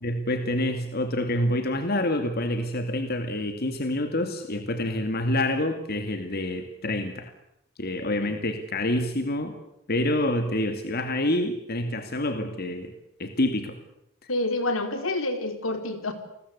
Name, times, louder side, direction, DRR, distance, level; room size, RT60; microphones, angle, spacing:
voice 1, 0.0-7.3 7.8-9.6 9.9-12.9 13.2-13.8, left 1 dB, 50° left, 7 dB, 2.3 m, -27 dB
voice 2, 14.3-16.1, left 2 dB, 80° left, 7 dB, 4.2 m, -28 dB
29.5 x 21.0 x 8.3 m, 0.80 s
head